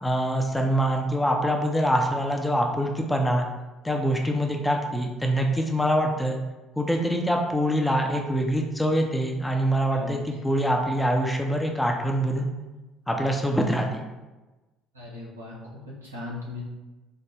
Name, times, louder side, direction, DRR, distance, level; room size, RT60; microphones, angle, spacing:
voice 1, 0.0-3.5 3.8-6.4 6.8-12.5 13.1-14.0, equal, 10° left, 2 dB, 0.6 m, -24 dB
voice 2, 9.9-10.4 14.9-16.6, left 2 dB, 85° right, -5 dB, 0.8 m, -38 dB
3.8 x 2.1 x 3.3 m, 1.1 s
figure-of-eight pair, 55°, 0 cm